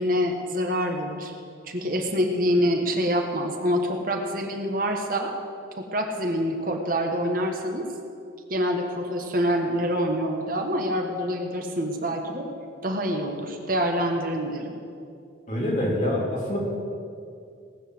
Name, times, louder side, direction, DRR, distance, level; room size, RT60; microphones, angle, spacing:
voice 1, 0.0-1.3 1.7-5.3 5.8-7.9 8.5-12.5 12.8-14.7, equal, 45° right, 3 dB, 1.4 m, -26 dB
voice 2, 15.5-16.6, left 1 dB, 45° left, -4 dB, 3.4 m, -25 dB
18.5 x 7.5 x 7.9 m, 2.4 s
head